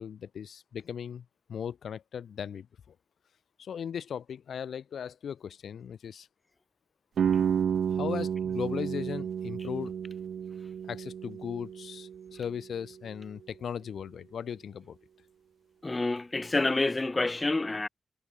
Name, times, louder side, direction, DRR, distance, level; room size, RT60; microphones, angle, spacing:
voice 1, 0.0-2.7 3.6-6.3 8.0-10.0 10.9-15.0, left 8 dB, 75° left, 6.9 m, -37 dB
sound 1, 7.2-12.9, right 8 dB, 80° right, 7.3 m, -31 dB
voice 2, 15.8-17.9, left 2 dB, 20° left, 4.8 m, -28 dB
wide cardioid pair, 150°, 0 cm